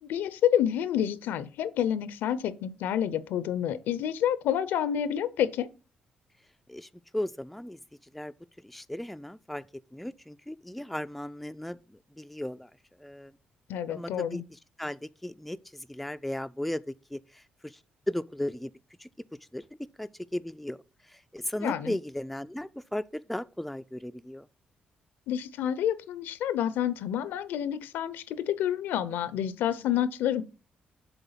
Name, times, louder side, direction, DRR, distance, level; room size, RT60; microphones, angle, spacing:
voice 1, 0.0-5.7 13.7-14.4 21.6-22.0 25.3-30.4, left 10 dB, 85° left, 0.5 m, -29 dB
voice 2, 6.7-7.8 8.1-8.3 8.6-9.6 9.9-12.7 13.0-13.3 13.9-17.7 18.1-18.7 19.0-19.1 19.5-19.6 20.0-20.8 21.1-24.5, left 1 dB, ahead, 0.3 m, -36 dB
7.1 x 3.5 x 5.6 m
cardioid pair, 85°, 3 cm